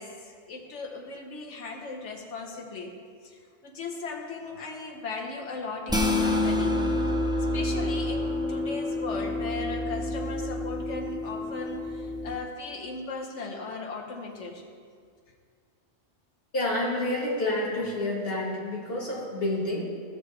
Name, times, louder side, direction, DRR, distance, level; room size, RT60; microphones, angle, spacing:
voice 1, 0.0-3.0 3.2-6.8 7.5-14.6, left 3 dB, 85° left, 1 dB, 1.4 m, -37 dB
sound 1, 5.9-12.4, left 2 dB, 5° right, 0.5 m, -28 dB
voice 2, 16.5-19.8, left 1 dB, 55° left, -5 dB, 2.1 m, -29 dB
15.0 x 5.9 x 3.3 m, 2.1 s
omnidirectional pair, 1.2 m